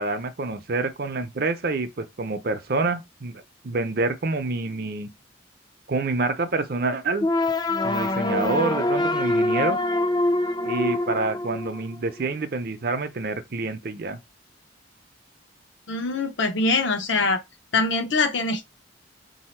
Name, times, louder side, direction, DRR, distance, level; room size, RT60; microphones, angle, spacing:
voice 1, 0.0-5.1 5.9-7.3 7.8-9.8 10.6-14.2, right 3 dB, 50° right, 0.6 m, -27 dB
sound 1, 7.2-12.2, left 2 dB, 20° left, 0.4 m, -24 dB
voice 2, 15.9-17.4 17.7-18.7, left 3 dB, 75° left, 0.8 m, -23 dB
4.1 x 2.7 x 4.3 m
head